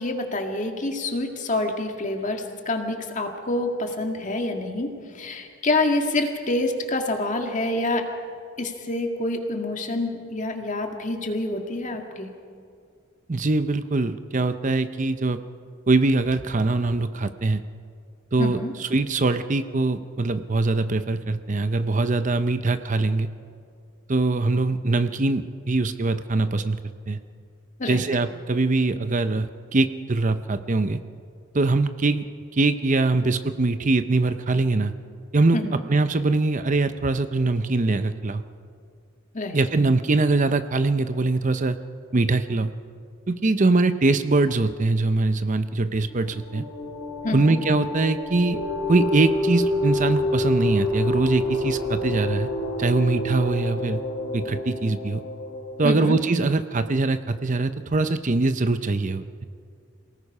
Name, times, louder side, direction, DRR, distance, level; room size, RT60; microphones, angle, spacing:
voice 1, 0.0-4.9 5.1-8.0 8.6-12.3 18.4-18.7 27.8-28.0 35.5-35.8 39.3-39.6 47.2-47.6 55.8-56.2, left 2 dB, 35° left, 4 dB, 2.0 m, -27 dB
voice 2, 13.3-15.4 15.9-17.6 18.3-23.3 24.1-26.8 27.1-27.2 27.9-31.0 31.5-32.2 32.5-34.9 35.3-35.6 35.9-38.4 39.5-41.8 42.1-42.7 43.3-46.6 47.3-48.6 48.9-52.5 52.8-54.0 54.3-55.2 55.8-59.5, right 3 dB, 35° right, 11 dB, 0.6 m, -22 dB
sound 1, 46.1-56.3, left 1 dB, 85° left, 4.2 m, -28 dB
28.0 x 18.5 x 5.5 m, 2.3 s
head